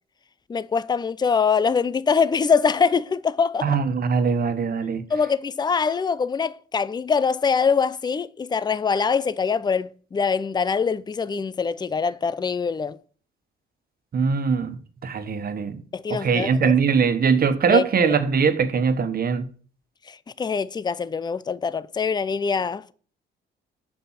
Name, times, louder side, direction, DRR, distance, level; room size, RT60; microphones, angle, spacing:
voice 1, 0.5-3.8 5.1-13.0 15.9-16.7 17.7-18.2 20.1-22.9, left 5 dB, 20° left, 0.5 m, -23 dB
voice 2, 3.6-5.0 14.1-15.8 16.1-19.5, right 6 dB, 50° right, 1.4 m, -21 dB
7.0 x 5.5 x 7.4 m
cardioid pair, 90°, 20 cm